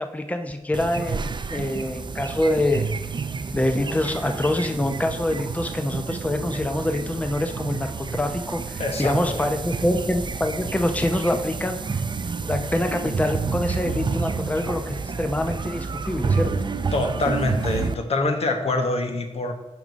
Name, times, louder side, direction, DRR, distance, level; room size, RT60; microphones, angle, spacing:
voice 1, 0.0-2.9 3.5-11.8 12.5-16.6, left 1 dB, 15° left, 6 dB, 0.7 m, -25 dB
sound 1, 0.7-17.9, right 4 dB, 45° right, 0.5 m, -29 dB
voice 2, 8.8-9.5 16.9-19.5, left 2 dB, 65° left, 5 dB, 1.2 m, -25 dB
11.5 x 4.8 x 4.1 m, 1.0 s
wide cardioid pair, 85°, 11 cm